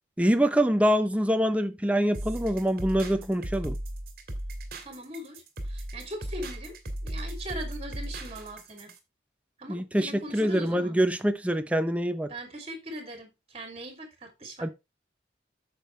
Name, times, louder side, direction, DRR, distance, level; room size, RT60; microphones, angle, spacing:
voice 1, 0.2-3.8 9.7-12.3 14.6-14.7, equal, 5° right, 0.6 m, -25 dB
sound 1, 2.1-9.0, right 1 dB, 55° right, 1.9 m, -36 dB
voice 2, 4.8-6.8 7.0-8.9 9.6-10.9 12.3-14.7, equal, 35° right, 2.8 m, -40 dB
8.9 x 6.8 x 3.2 m
head